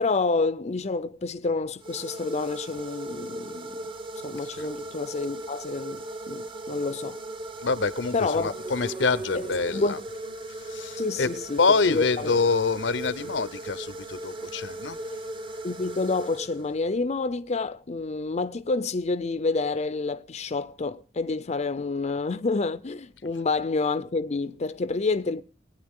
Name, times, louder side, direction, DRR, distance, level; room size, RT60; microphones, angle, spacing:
voice 1, 0.0-3.8 4.2-7.2 8.1-8.5 9.3-9.4 9.7-10.0 11.0-11.6 11.9-12.4 15.6-25.4, left 3 dB, 40° left, 0.6 m, -28 dB
sound 1, 1.8-17.0, right 1 dB, 30° right, 0.9 m, -38 dB
voice 2, 7.6-10.0 10.7-11.3 11.6-15.0, left 4 dB, 85° left, 0.8 m, -26 dB
20.5 x 9.5 x 3.7 m
head